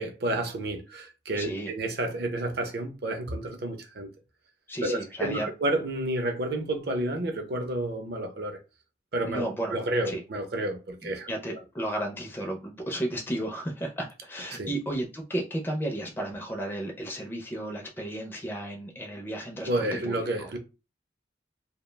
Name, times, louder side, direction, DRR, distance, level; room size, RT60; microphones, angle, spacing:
voice 1, 0.0-4.1 4.8-8.6 9.1-9.5 9.7-11.3 14.5-14.7 19.7-20.6, right 1 dB, 60° right, 0.6 m, -30 dB
voice 2, 1.4-1.7 4.7-5.5 9.2-9.8 10.0-10.2 11.0-20.5, right 1 dB, 10° left, 0.4 m, -33 dB
2.3 x 2.1 x 3.2 m
head